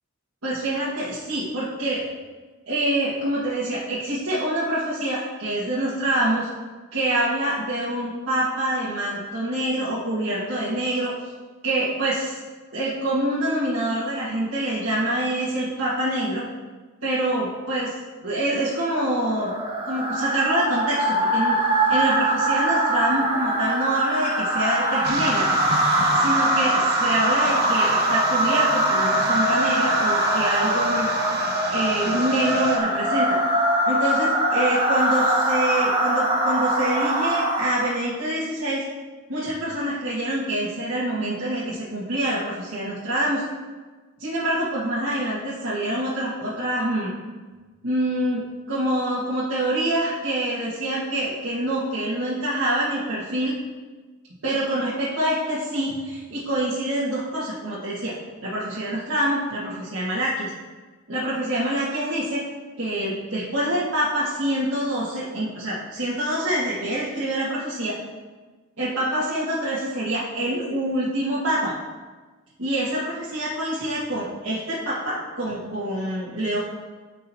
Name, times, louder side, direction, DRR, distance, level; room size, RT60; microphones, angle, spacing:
voice 1, 0.4-2.0 2.7-6.5 6.9-11.1 11.6-12.4 12.7-16.4 17.0-17.9 18.2-19.5 19.8-21.6 21.9-25.5 26.1-31.1 31.7-33.4 33.9-38.8 39.3-43.4 44.2-47.1 47.8-53.5 54.4-58.1 58.4-60.5 61.1-62.4 62.8-67.9 68.8-71.7 72.6-76.6, right 1 dB, 65° right, -10 dB, 1.7 m, -26 dB
sound 1, 19.1-38.0, right 1 dB, 25° right, 1.0 m, -22 dB
sound 2, 25.0-32.8, right 3 dB, 45° right, 0.9 m, -33 dB
14.0 x 5.4 x 2.8 m, 1.3 s
head